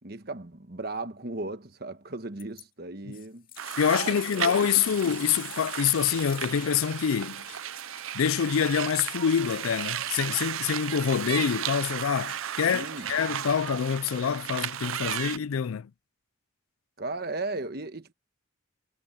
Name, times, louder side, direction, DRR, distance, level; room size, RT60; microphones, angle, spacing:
voice 1, 0.0-3.5 4.0-5.0 12.7-13.1 17.0-18.1, right 2 dB, 45° right, 1.3 m, -36 dB
sound 1, 2.4-2.6 3.1-13.3 14.1-14.2, left 12 dB, 40° left, 2.5 m, -48 dB
sound 2, 3.6-15.4, right 10 dB, 75° right, 0.5 m, -35 dB
voice 2, 3.8-7.5 8.1-15.9, left 7 dB, 80° left, 0.4 m, -26 dB
sound 3, 5.9-7.1 7.5-7.8 8.2-8.5 9.3-10.3 10.7-11.0 11.3-11.6 12.3-12.6 13.0-13.3 13.6-14.0, left 10 dB, 60° left, 2.5 m, -54 dB
head